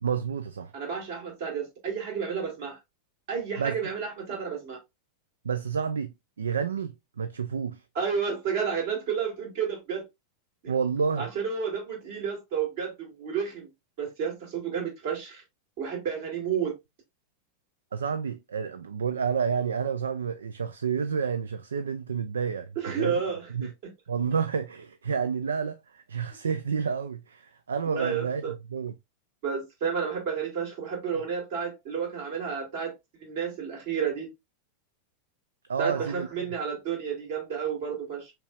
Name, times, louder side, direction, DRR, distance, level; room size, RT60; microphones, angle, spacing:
voice 1, 0.0-0.7 3.6-3.8 5.4-7.8 10.7-11.3 17.9-23.2 23.5-23.7 24.1-28.9 35.7-36.3, right 6 dB, 70° right, 0.4 m, -30 dB
voice 2, 0.7-2.8 3.3-4.8 7.9-10.0 10.6-10.7 11.2-13.7 14.0-15.4 15.8-16.7 22.8-23.9 27.9-28.5 29.4-32.9 33.2-34.3 35.8-38.3, right 6 dB, 50° right, 2.5 m, -31 dB
5.5 x 3.6 x 2.4 m
figure-of-eight pair, 90°, 0 cm